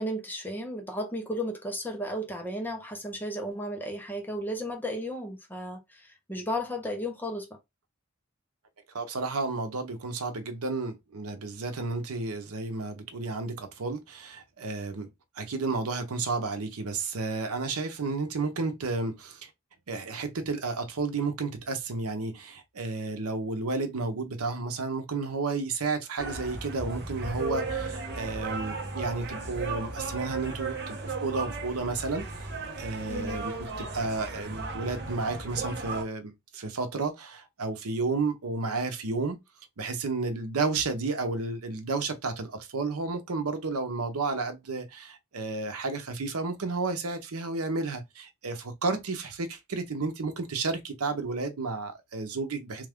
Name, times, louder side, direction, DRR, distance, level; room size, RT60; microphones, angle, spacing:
voice 1, 0.0-7.5 33.1-33.4, equal, 10° left, 0.6 m, -34 dB
voice 2, 8.9-15.1 15.4-19.5 19.9-32.5 32.8-39.4 39.8-52.9, right 3 dB, 85° right, 0.7 m, -32 dB
sound 1, 26.2-36.0, right 3 dB, 50° right, 0.8 m, -35 dB
3.3 x 2.3 x 3.5 m
head